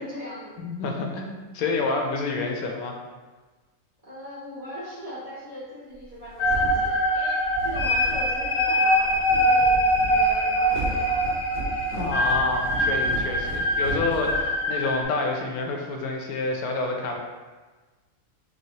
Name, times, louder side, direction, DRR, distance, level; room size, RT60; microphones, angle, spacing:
voice 1, 0.0-0.6 4.0-9.8 10.1-11.2, equal, 30° right, -8 dB, 0.8 m, -39 dB
voice 2, 0.6-3.0 11.9-17.2, left 3 dB, 90° left, 2 dB, 1.1 m, -28 dB
sound 1, 6.0-14.9, right 3 dB, 70° right, 1.3 m, -35 dB
sound 2, 6.4-15.0, equal, 65° left, 1.0 m, -23 dB
4.1 x 3.1 x 2.8 m, 1.3 s
omnidirectional pair, 1.5 m